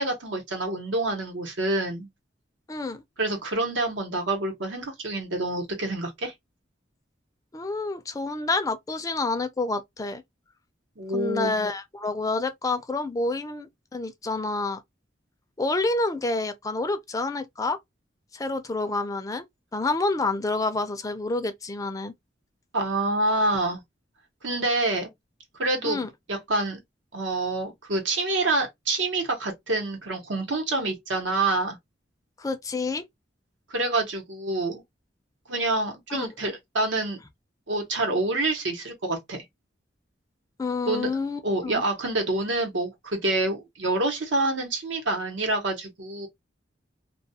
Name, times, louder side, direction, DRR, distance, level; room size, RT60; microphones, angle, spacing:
voice 1, 0.0-2.1 3.2-6.3 11.0-11.5 22.7-23.8 24.4-25.1 25.6-26.8 27.1-31.8 33.7-34.8 35.5-37.2 37.7-39.4 40.9-41.1 41.4-46.3, right 2 dB, 80° right, 1.0 m, -27 dB
voice 2, 2.7-3.0 7.5-10.2 11.1-14.8 15.6-17.8 18.3-19.4 19.7-22.1 25.8-26.1 32.4-33.0 36.1-36.3 40.6-41.8, left 3 dB, 20° left, 0.4 m, -28 dB
2.3 x 2.3 x 2.7 m
head